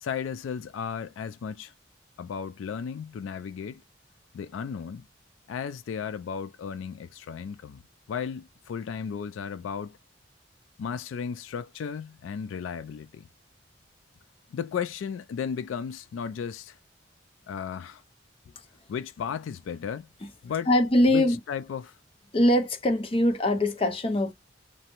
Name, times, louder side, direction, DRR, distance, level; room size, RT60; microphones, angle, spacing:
voice 1, 0.0-1.7 2.2-3.8 4.3-5.1 5.5-7.8 8.1-10.0 10.8-13.3 14.5-16.8 17.5-18.0 18.9-20.1 20.4-20.7 21.1-22.0, left 7 dB, 85° left, 0.3 m, -34 dB
voice 2, 20.7-21.4 22.3-24.3, left 1 dB, 30° left, 0.5 m, -22 dB
2.6 x 2.0 x 2.8 m
head